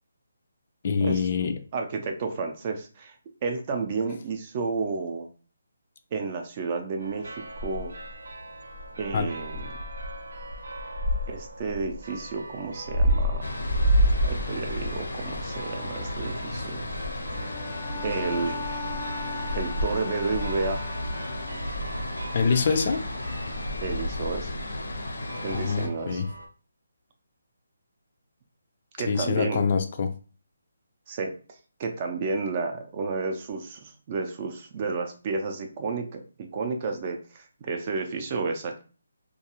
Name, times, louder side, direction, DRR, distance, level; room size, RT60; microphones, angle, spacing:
voice 1, 0.8-1.5 9.1-9.3 22.3-23.0 25.5-26.3 29.1-30.1, left 5 dB, 40° left, 7 dB, 0.3 m, -25 dB
voice 2, 1.7-3.1 3.4-5.3 6.1-7.9 9.0-9.7 11.3-13.5 14.2-16.9 18.0-18.7 19.5-20.8 23.8-24.5 25.4-26.2 29.0-29.7 31.1-31.3 31.8-38.8, right 4 dB, 30° right, 4 dB, 0.4 m, -31 dB
sound 1, 7.0-26.5, equal, 75° right, 0.7 m, -32 dB
sound 2, 13.4-25.9, left 1 dB, 80° left, 0.6 m, -35 dB
Bowed string instrument, 17.3-21.9, left 4 dB, 10° right, 0.9 m, -38 dB
2.3 x 2.3 x 2.9 m, 0.37 s
hypercardioid pair, 165°, 0 cm